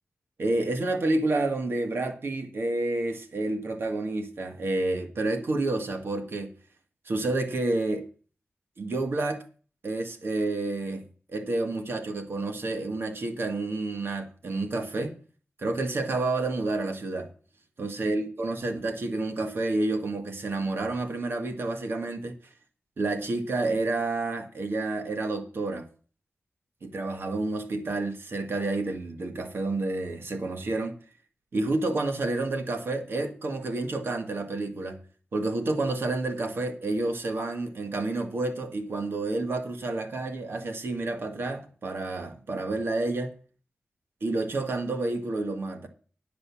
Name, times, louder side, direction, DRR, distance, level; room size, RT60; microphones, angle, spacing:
voice 1, 0.4-6.5 7.1-8.1 8.8-9.4 9.8-11.0 11.3-15.2 15.6-17.3 17.8-22.4 23.0-25.9 26.8-30.9 31.5-35.0 35.3-43.3 44.2-45.9, right 2 dB, 70° right, 1.9 m, -29 dB
9.9 x 7.0 x 7.1 m
cardioid pair, 70°, 4 cm